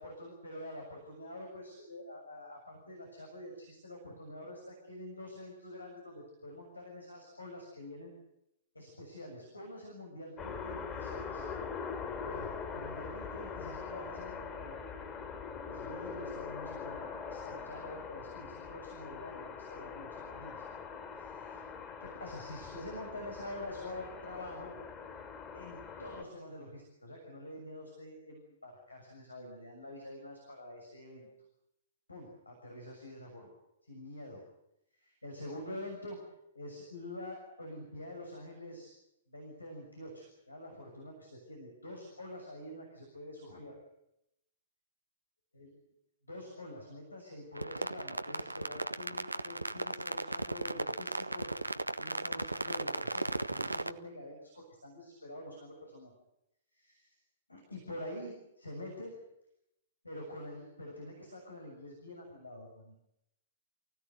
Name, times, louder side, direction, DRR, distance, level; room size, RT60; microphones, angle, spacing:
voice 1, 0.0-8.1 8.7-11.5 12.3-15.1 15.7-20.6 21.1-21.7 22.0-24.7 25.5-31.3 32.1-33.5 33.8-34.4 34.9-36.2 36.5-38.9 39.3-43.8 45.5-45.7 46.2-56.1 56.7-57.2 57.5-59.1 60.0-63.0, left 1 dB, 85° left, 1 dB, 6.6 m, -46 dB
sound 1, 10.4-26.2, left 5 dB, 25° left, 4.4 m, -42 dB
sound 2, 47.5-53.9, right 1 dB, 90° right, 1.1 m, -36 dB
29.0 x 16.5 x 9.3 m, 0.83 s
figure-of-eight pair, 110°, 0 cm